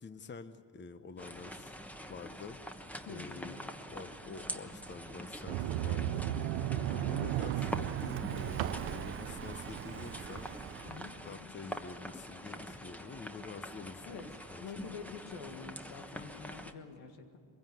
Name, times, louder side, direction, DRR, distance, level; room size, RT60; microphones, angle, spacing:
voice 1, 0.0-1.8 2.1-2.6 3.1-6.2 6.9-10.5 11.3-14.6, left 4 dB, 25° left, 11 dB, 0.9 m, -47 dB
sound 1, 1.2-16.7, equal, 5° left, 1.2 m, -45 dB
Car passing by, 2.9-11.4, right 8 dB, 30° right, 0.5 m, -47 dB
voice 2, 3.1-3.7 6.7-7.1 10.8-11.5 14.0-14.3 14.6-17.4, left 6 dB, 85° left, 5 dB, 1.9 m, -47 dB
Sliding door, 5.5-10.3, right 12 dB, 80° right, 0.7 m, -35 dB
22.0 x 16.0 x 9.3 m, 2.4 s
supercardioid pair, 75°, 45 cm